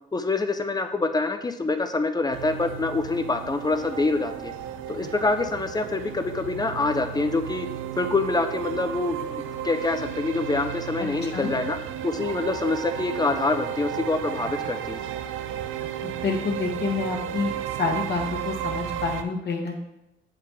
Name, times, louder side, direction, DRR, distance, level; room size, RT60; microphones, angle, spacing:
voice 1, 0.1-4.5 4.9-7.7 8.0-11.8 12.0-15.0, left 3 dB, 20° left, 8 dB, 0.6 m, -26 dB
sound 1, 2.3-19.2, right 10 dB, 85° right, 0.5 m, -33 dB
voice 2, 16.0-17.5 17.8-19.8, left 4 dB, 55° left, 0 dB, 1.4 m, -28 dB
7.1 x 4.8 x 3.5 m, 0.90 s
cardioid pair, 90°, 20 cm